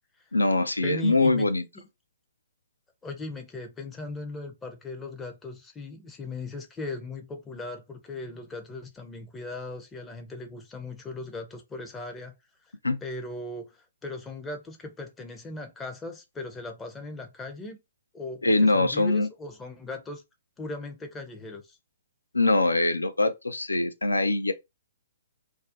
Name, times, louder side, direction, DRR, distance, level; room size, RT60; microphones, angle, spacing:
voice 1, 0.3-1.6 12.8-13.0 18.4-19.3 22.3-24.5, left 2 dB, 80° left, 0.3 m, -23 dB
voice 2, 0.8-1.5 1.7-1.9 3.0-12.3 13.0-17.8 18.1-20.2 20.6-21.8, left 2 dB, 10° left, 0.5 m, -38 dB
2.3 x 2.1 x 2.6 m
figure-of-eight pair, 125°, 0 cm